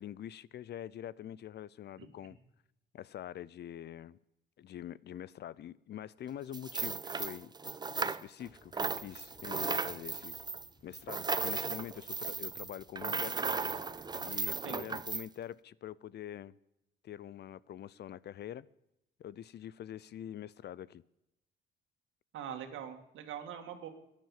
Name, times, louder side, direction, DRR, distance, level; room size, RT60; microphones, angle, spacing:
voice 1, 0.0-2.4 2.9-4.2 4.6-7.5 8.0-10.4 10.8-13.6 14.2-16.6 17.0-18.7 19.2-21.0, left 11 dB, 60° left, 0.5 m, -45 dB
sound 1, 6.5-8.5 8.7-15.3, right 4 dB, 20° right, 0.5 m, -36 dB
sound 2, 8.4-14.4, left 2 dB, 35° left, 3.4 m, -63 dB
voice 2, 22.3-23.9, right 9 dB, 80° right, 2.1 m, -43 dB
15.0 x 10.5 x 7.3 m
cardioid pair, 90°, 20 cm